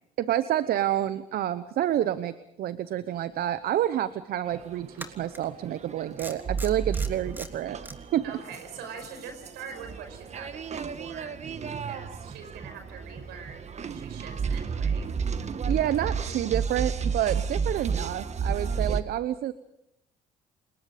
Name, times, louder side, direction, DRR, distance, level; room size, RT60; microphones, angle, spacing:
voice 1, 0.2-7.8 8.1-8.2 15.7-19.5, right 12 dB, 65° right, 14 dB, 0.9 m, -28 dB
sound 1, 3.6-3.7 4.9-5.5 6.2-7.9, right 1 dB, 10° right, 3.2 m, -40 dB
sound 2, 4.5-19.0, right 6 dB, 40° right, 1.5 m, -32 dB
voice 2, 8.2-11.3 11.8-15.1, right 6 dB, 80° right, 7 dB, 5.5 m, -43 dB
29.5 x 21.0 x 5.1 m, 0.82 s
supercardioid pair, 65°, 17 cm